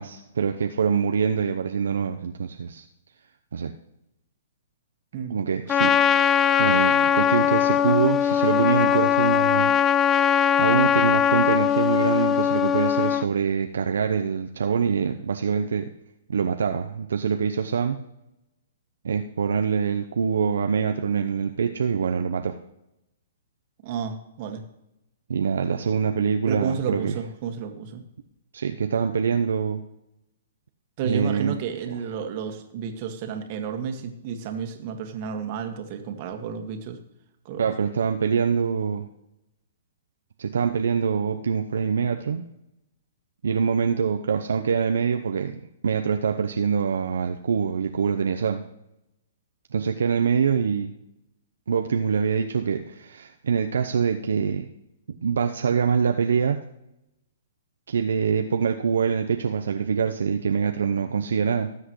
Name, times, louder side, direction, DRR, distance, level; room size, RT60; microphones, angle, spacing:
voice 1, 0.0-2.8 3.5-3.7 5.3-6.0 6.6-10.2 10.6-15.9 16.3-18.0 19.0-22.6 25.3-27.1 28.5-29.8 31.0-31.6 37.6-39.1 40.4-42.5 43.4-48.6 49.7-50.9 51.7-54.7 55.2-56.6 57.9-61.7, right 6 dB, 75° right, 5 dB, 0.8 m, -24 dB
Trumpet, 5.7-13.3, left 9 dB, 20° left, 0.4 m, -20 dB
voice 2, 23.8-24.6 26.5-28.0 31.0-37.0 37.5-37.7, right 6 dB, 45° right, 5 dB, 1.9 m, -31 dB
18.5 x 8.0 x 3.2 m, 0.85 s
hypercardioid pair, 125°, 0 cm